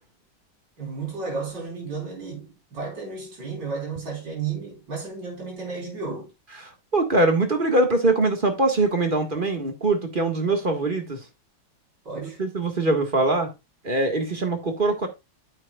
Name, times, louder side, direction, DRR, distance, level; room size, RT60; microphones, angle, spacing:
voice 1, 0.8-6.3 12.0-12.4, right 4 dB, 65° right, 5.1 m, -33 dB
voice 2, 6.6-11.2 12.2-13.5 13.8-15.1, right 2 dB, 30° right, 1.6 m, -23 dB
9.3 x 8.0 x 2.3 m
omnidirectional pair, 2.1 m